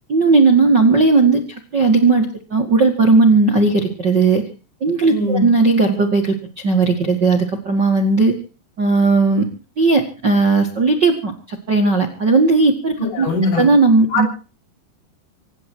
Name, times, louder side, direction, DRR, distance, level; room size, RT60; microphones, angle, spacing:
voice 1, 0.1-1.4 1.7-2.2 2.5-4.4 4.8-6.4 6.6-8.3 8.8-9.4 9.8-13.3 13.6-14.3, right 3 dB, 45° right, 4 dB, 1.4 m, -15 dB
voice 2, 5.1-5.4 13.0-13.7 14.1-14.3, left 2 dB, 80° left, 3 dB, 9.2 m, -20 dB
26.0 x 10.5 x 4.6 m, 0.37 s
omnidirectional pair, 5.2 m